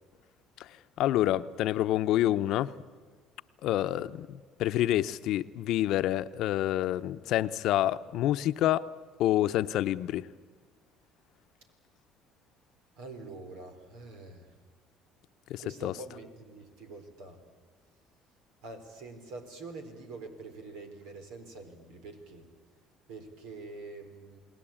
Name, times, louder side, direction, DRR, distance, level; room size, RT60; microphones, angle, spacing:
voice 1, 1.0-2.7 3.6-8.9 9.2-10.3 15.5-15.9, left 13 dB, 70° left, 0.8 m, -28 dB
voice 2, 13.0-14.5 15.6-17.4 18.6-22.5 23.1-24.4, right 3 dB, 85° right, 4.2 m, -45 dB
29.0 x 20.0 x 8.9 m
supercardioid pair, 85°, 0 cm